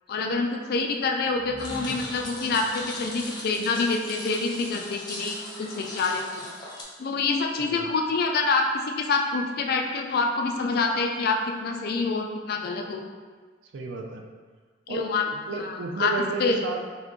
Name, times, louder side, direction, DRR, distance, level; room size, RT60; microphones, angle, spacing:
voice 1, 0.1-6.5 7.0-8.6 9.0-13.1 14.9-15.2 15.6-16.1 16.4-16.6, left 4 dB, 55° left, 2 dB, 0.3 m, -26 dB
sound 1, 1.2-5.0, equal, 30° right, 0.9 m, -45 dB
sound 2, 1.6-6.8, left 1 dB, 25° left, 0.7 m, -39 dB
voice 2, 13.7-14.2 14.9-16.8, right 4 dB, 75° right, 2 dB, 0.4 m, -33 dB
2.8 x 2.5 x 3.5 m, 1.5 s
head